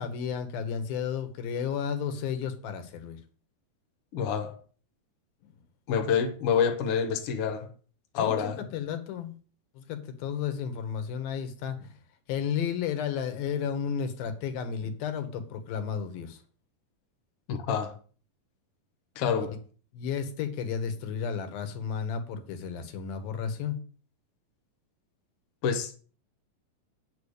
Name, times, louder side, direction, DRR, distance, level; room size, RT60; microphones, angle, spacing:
voice 1, 0.0-3.2 8.2-9.3 9.8-11.9 12.3-16.4 19.9-23.8, left 7 dB, 85° left, 3.1 m, -33 dB
voice 2, 4.1-4.6 5.9-7.7 8.1-8.7 17.5-18.0 19.2-19.6 25.6-25.9, left 7 dB, 60° left, 1.7 m, -27 dB
8.6 x 5.9 x 6.5 m
omnidirectional pair, 4.1 m